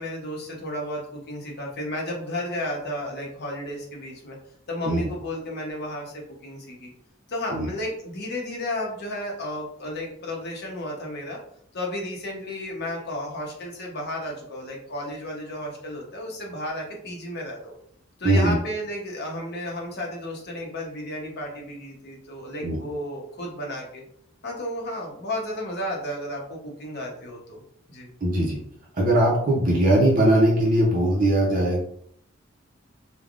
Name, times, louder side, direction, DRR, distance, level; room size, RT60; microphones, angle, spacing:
voice 1, 0.0-4.4 4.7-6.9 7.3-11.4 11.7-17.7 18.2-24.0 24.4-27.6 27.9-28.1, left 1 dB, 55° left, -1 dB, 0.8 m, -33 dB
voice 2, 28.2-28.6 28.9-31.8, right 1 dB, 45° right, -4 dB, 0.6 m, -20 dB
3.3 x 2.2 x 2.4 m, 0.68 s
head